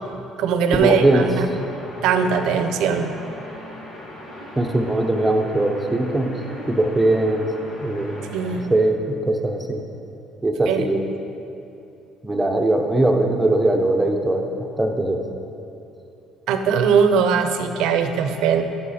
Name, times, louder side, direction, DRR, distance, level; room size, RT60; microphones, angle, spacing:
voice 1, 0.1-1.5 2.0-3.2 8.3-8.7 10.7-10.9 16.5-18.6, right 6 dB, 80° right, 8 dB, 0.7 m, -20 dB
sound 1, 0.7-8.6, left 1 dB, 85° left, 1.9 m, -38 dB
voice 2, 0.7-1.3 4.6-6.3 6.7-7.5 7.8-8.2 8.7-9.8 10.4-11.1 12.2-15.2, right 2 dB, 10° right, 3 dB, 0.8 m, -20 dB
11.5 x 5.8 x 4.3 m, 2.8 s
cardioid pair, 115°, 0 cm